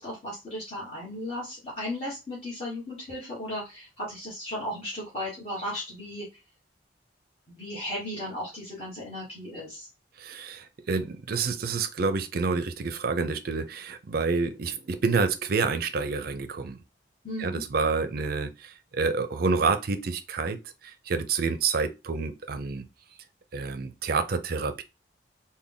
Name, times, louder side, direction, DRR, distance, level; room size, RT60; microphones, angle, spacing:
voice 1, 0.0-6.3 7.5-9.9 17.2-17.6, left 1 dB, 30° left, 1.2 m, -35 dB
voice 2, 10.2-16.8 17.4-20.6 20.8-22.9 23.5-24.8, right 4 dB, 55° right, 0.4 m, -28 dB
3.5 x 2.2 x 3.7 m
head